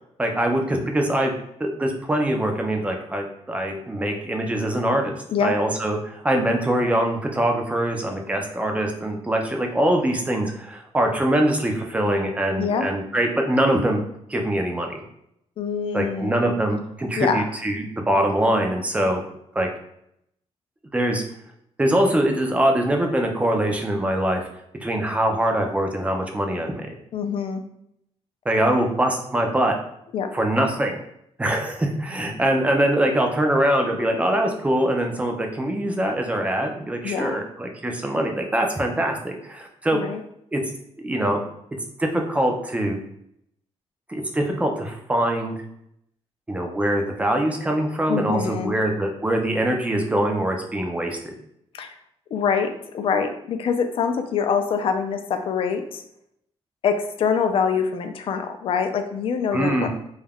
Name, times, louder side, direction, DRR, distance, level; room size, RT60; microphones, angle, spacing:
voice 1, 0.2-1.3 1.6-14.0 14.3-15.0 15.9-19.2 19.5-19.7 20.9-21.2 21.8-24.5 24.8-26.9 28.5-29.8 30.3-31.0 31.4-40.0 40.5-40.6 41.0-41.4 42.0-43.0 44.1-45.5 46.5-51.3 59.5-59.9, right 1 dB, 10° right, 2 dB, 0.4 m, -23 dB
voice 2, 12.6-12.9 15.6-16.5 17.2-17.5 27.1-27.6 30.1-30.3 37.0-37.4 39.9-40.2 48.1-48.7 51.7-51.9 52.3-56.0 56.8-59.9, left 6 dB, 55° left, 7 dB, 0.3 m, -25 dB
2.3 x 2.1 x 3.3 m, 0.75 s
wide cardioid pair, 150°, 11 cm